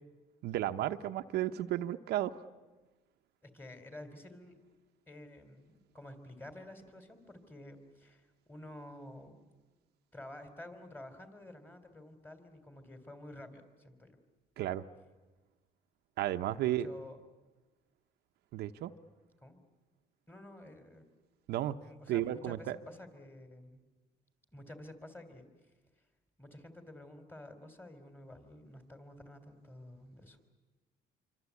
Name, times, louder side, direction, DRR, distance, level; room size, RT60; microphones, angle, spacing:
voice 1, 0.4-2.4 14.6-14.8 16.2-16.9 18.5-18.9 21.5-21.8 22.1-22.8, right 13 dB, 75° right, 8 dB, 0.9 m, -33 dB
voice 2, 3.4-4.6 5.1-9.4 10.1-14.1 16.6-17.2 19.4-19.6 20.3-21.0 21.8-23.8 24.5-25.5 26.4-30.4, left 1 dB, 10° left, 8 dB, 3.6 m, -51 dB
26.5 x 25.0 x 8.4 m, 1.2 s
cardioid pair, 110°, 17 cm